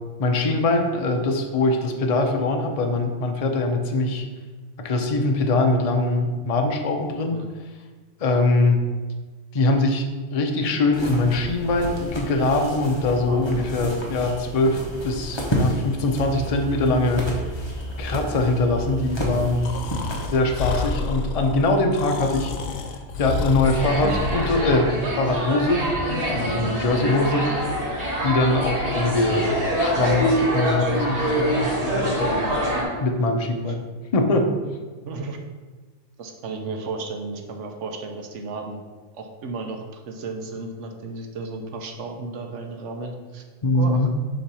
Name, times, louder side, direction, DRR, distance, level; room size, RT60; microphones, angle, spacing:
voice 1, 0.2-4.2 4.8-7.4 8.2-8.8 9.5-10.0 10.3-14.8 15.0-17.3 18.0-19.7 20.3-22.5 23.2-24.9 25.2-27.8 28.2-29.5 29.8-32.4 33.0-33.8 34.1-34.5 43.6-44.1, left 2 dB, 40° left, 3 dB, 0.5 m, -22 dB
sound 1, 10.9-20.7, equal, 20° left, 1.0 m, -31 dB
voice 2, 13.3-13.6 27.2-27.3 33.7-33.8 35.1-35.4 36.2-38.8 39.1-43.4 43.7-44.1, right 3 dB, 65° right, 4 dB, 1.1 m, -34 dB
Breathing, 19.6-24.7, left 4 dB, 80° left, 1.1 m, -30 dB
sound 2, 23.6-32.8, equal, 40° right, 1.7 m, -25 dB
7.1 x 3.2 x 5.4 m, 1.4 s
omnidirectional pair, 1.4 m